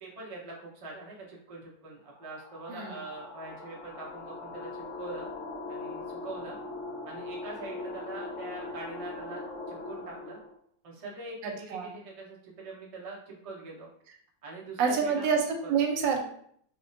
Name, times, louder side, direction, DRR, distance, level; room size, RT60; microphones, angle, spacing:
voice 1, 0.0-5.3 5.7-6.6 7.0-9.4 9.7-10.4 10.8-13.9 14.4-15.2 15.6-15.8, right 2 dB, 65° right, -4 dB, 0.3 m, -43 dB
sound 1, 2.2-10.5, left 3 dB, 75° left, 0.6 m, -40 dB
voice 2, 2.7-3.0 11.4-12.0 14.8-16.2, right 6 dB, 85° right, 3 dB, 1.3 m, -28 dB
4.7 x 2.1 x 2.5 m, 0.64 s
omnidirectional pair, 2.0 m